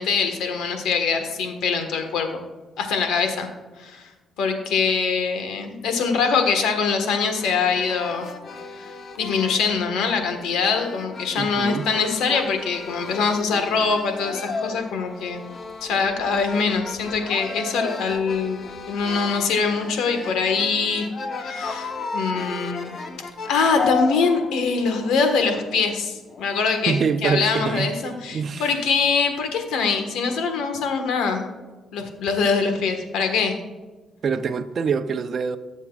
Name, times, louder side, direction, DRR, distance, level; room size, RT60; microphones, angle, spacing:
voice 1, 0.0-2.4 2.8-3.5 3.8-4.1 4.4-8.3 9.2-15.4 15.8-21.1 21.4-22.9 23.5-26.9 27.2-31.4 31.9-33.6, left 5 dB, 85° left, 1.5 m, -23 dB
sound 1, 7.4-27.0, left 4 dB, 50° left, 1.0 m, -34 dB
voice 2, 11.4-11.9 26.9-27.9 28.3-28.7 34.2-35.6, right 6 dB, 50° right, 0.7 m, -25 dB
17.5 x 7.2 x 2.4 m
cardioid pair, 90°, 0 cm